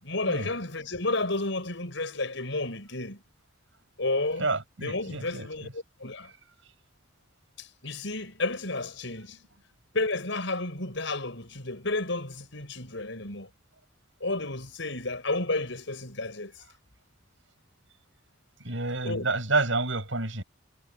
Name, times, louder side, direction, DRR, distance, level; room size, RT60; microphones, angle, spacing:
voice 1, 0.0-3.2 4.0-4.5 4.8-6.3 7.6-9.4 9.9-13.5 14.2-16.5 19.0-19.2, left 2 dB, 65° left, 7.2 m, -31 dB
voice 2, 4.4-5.7 18.6-20.4, right 3 dB, 70° right, 7.3 m, -29 dB
head